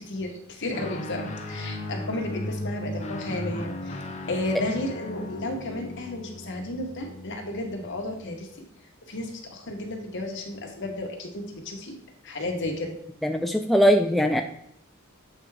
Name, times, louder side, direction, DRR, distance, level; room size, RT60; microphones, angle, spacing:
voice 1, 0.0-4.0 4.3-8.5 9.1-11.9 12.2-12.9, left 1 dB, 60° left, 1 dB, 1.4 m, -33 dB
Guitar, 0.7-8.4, left 1 dB, 35° left, 0.9 m, -36 dB
voice 2, 13.2-14.4, equal, ahead, 4 dB, 0.3 m, -20 dB
7.9 x 3.6 x 4.8 m, 0.69 s
head